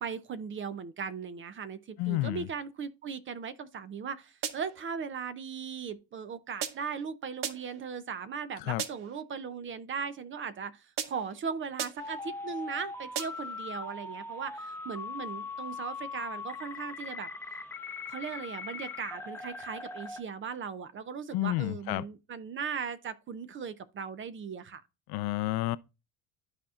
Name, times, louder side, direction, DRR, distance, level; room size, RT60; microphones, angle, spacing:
voice 1, 0.0-17.3 18.1-24.8, right 6 dB, 30° right, 0.5 m, -38 dB
voice 2, 2.0-2.5 8.6-8.8 21.3-22.0 25.1-25.8, left 17 dB, 60° left, 0.5 m, -30 dB
sound 1, 4.4-4.9 6.6-7.0 7.4-7.9 8.8-9.2 11.0-11.4 11.8-12.2 13.1-13.6, right 8 dB, 50° right, 0.8 m, -38 dB
sound 2, 12.0-20.2, left 4 dB, 5° left, 0.7 m, -40 dB
12.5 x 4.3 x 2.4 m
cardioid pair, 130°, 43 cm